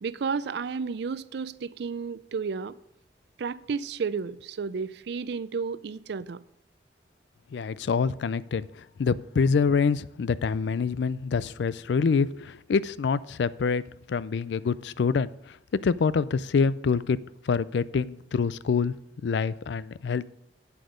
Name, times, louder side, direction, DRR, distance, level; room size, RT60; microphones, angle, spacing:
voice 1, 0.0-2.7 3.4-6.4, right 5 dB, 65° right, 0.4 m, -32 dB
voice 2, 7.5-15.6 15.8-17.2 17.4-18.9 19.2-20.3, left 5 dB, 70° left, 0.4 m, -26 dB
8.4 x 7.9 x 5.1 m
head